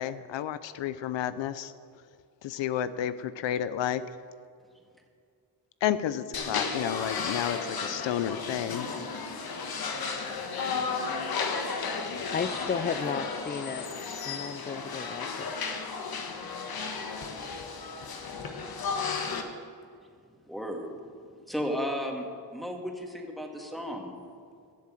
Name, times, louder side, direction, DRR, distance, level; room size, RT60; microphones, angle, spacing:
voice 1, 0.0-1.7 2.4-4.0 5.8-8.9, left 10 dB, 80° left, 14 dB, 0.6 m, -31 dB
sound 1, 6.3-19.4, left 4 dB, 55° left, 1.4 m, -34 dB
voice 2, 12.3-13.9 14.2-15.6, left 6 dB, 25° left, 10 dB, 0.4 m, -33 dB
voice 3, 20.5-20.9 21.5-24.1, equal, ahead, 2 dB, 1.9 m, -34 dB
15.0 x 7.4 x 7.6 m, 2.2 s
cardioid pair, 100°, 44 cm